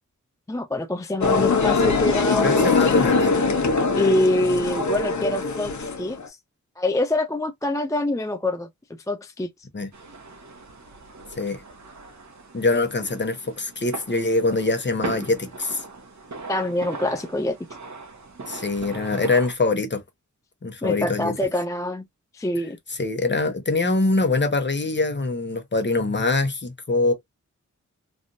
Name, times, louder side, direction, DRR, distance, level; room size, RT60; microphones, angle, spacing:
voice 1, 0.5-2.9 3.9-6.4 6.8-8.7 9.1-9.5 16.5-17.6 20.8-22.1 22.3-22.8, left 1 dB, 10° left, 0.4 m, -25 dB
sound 1, 1.2-6.3, left 4 dB, 70° left, 0.9 m, -22 dB
voice 2, 2.4-3.3 9.7-9.9 11.4-11.6 12.5-15.8 18.5-20.0 20.6-21.3 23.0-27.1, left 3 dB, 35° left, 1.0 m, -23 dB
sound 2, 9.9-19.5, right 3 dB, 70° right, 1.1 m, -39 dB
3.3 x 2.5 x 2.6 m
wide cardioid pair, 85°, 30 cm